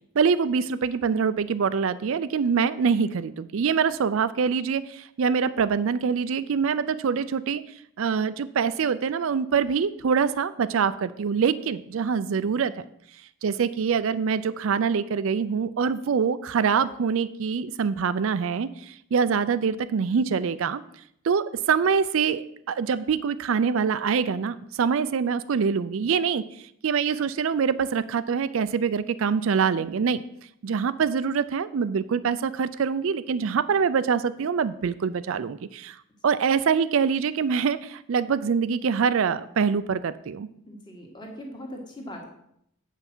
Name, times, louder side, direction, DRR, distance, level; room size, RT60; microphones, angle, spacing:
voice 1, 0.2-7.6 8.0-12.7 13.4-20.8 21.2-26.4 26.8-30.2 30.6-36.0 36.2-40.5, right 6 dB, 65° right, 14 dB, 0.4 m, -24 dB
voice 2, 40.7-42.3, equal, 20° left, 1 dB, 1.7 m, -40 dB
8.2 x 5.6 x 6.1 m, 0.72 s
head